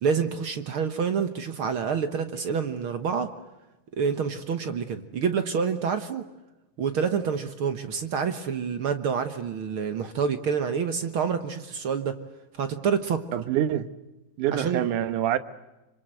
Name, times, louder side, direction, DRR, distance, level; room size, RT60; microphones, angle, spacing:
voice 1, 0.0-3.3 3.9-6.2 6.8-12.2 12.6-13.2 14.5-14.8, right 6 dB, 55° right, 1.7 m, -27 dB
voice 2, 13.3-13.9 14.4-15.4, right 11 dB, 80° right, 2.6 m, -25 dB
26.5 x 25.5 x 7.9 m
omnidirectional pair, 3.5 m